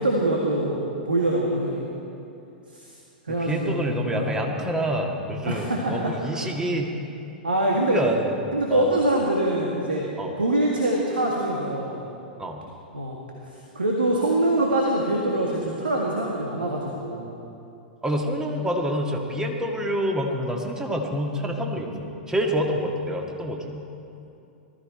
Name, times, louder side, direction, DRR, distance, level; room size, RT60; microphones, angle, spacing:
voice 1, 0.0-1.9 2.7-2.9 3.3-4.3 5.5-6.1 7.4-8.0 8.5-10.1 10.4-12.0 12.9-13.2 13.8-17.3, right 1 dB, 85° right, -1 dB, 1.8 m, -24 dB
voice 2, 3.3-6.9 7.9-8.4 8.7-8.9 10.2-10.3 12.4-12.6 18.0-23.8, equal, 10° right, 2 dB, 1.9 m, -27 dB
19.5 x 13.5 x 4.5 m, 2.7 s
figure-of-eight pair, 100°, 5 cm